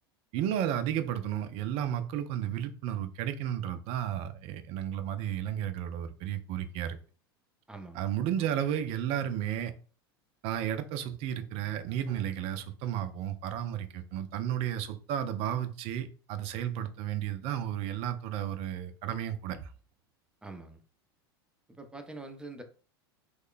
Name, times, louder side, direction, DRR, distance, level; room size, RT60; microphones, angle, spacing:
voice 1, 0.3-7.0 7.9-9.7 10.4-19.7, right 10 dB, 50° right, 0.5 m, -33 dB
voice 2, 7.7-8.0 20.4-20.8 21.8-22.6, right 2 dB, 5° right, 0.6 m, -44 dB
3.0 x 2.2 x 3.8 m
hypercardioid pair, 90°, 13 cm